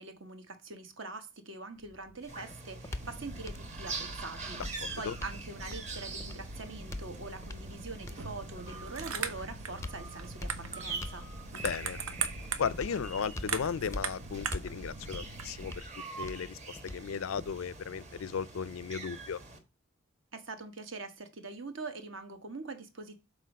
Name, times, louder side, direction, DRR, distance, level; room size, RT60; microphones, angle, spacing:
voice 1, 0.0-4.6 5.0-11.3 20.3-23.2, right 3 dB, 65° right, 1.2 m, -43 dB
sound 1, 1.8-17.8, left 1 dB, 15° left, 0.5 m, -45 dB
sound 2, 2.3-19.6, right 3 dB, 35° right, 1.3 m, -45 dB
sound 3, 3.0-15.8, right 5 dB, 80° right, 0.9 m, -41 dB
voice 2, 4.5-5.1 11.6-12.0 12.6-15.9 16.2-19.4, left 6 dB, 75° left, 0.4 m, -36 dB
6.6 x 4.2 x 5.2 m
head